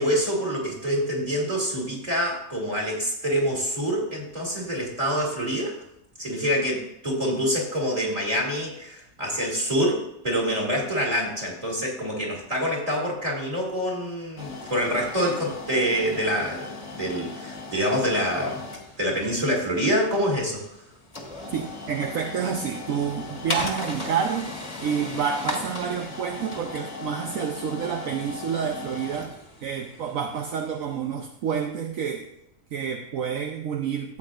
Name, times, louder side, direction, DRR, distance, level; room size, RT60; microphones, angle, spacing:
voice 1, 0.0-5.7 6.2-18.6 19.0-20.6, equal, 25° right, -2 dB, 2.6 m, -26 dB
sound 1, 14.4-31.2, left 2 dB, 20° left, 1.6 m, -37 dB
voice 2, 21.5-24.5 24.8-29.3 29.6-32.3 32.7-34.2, right 7 dB, 65° right, 3 dB, 1.1 m, -29 dB
13.5 x 8.5 x 2.5 m, 0.82 s
omnidirectional pair, 1.5 m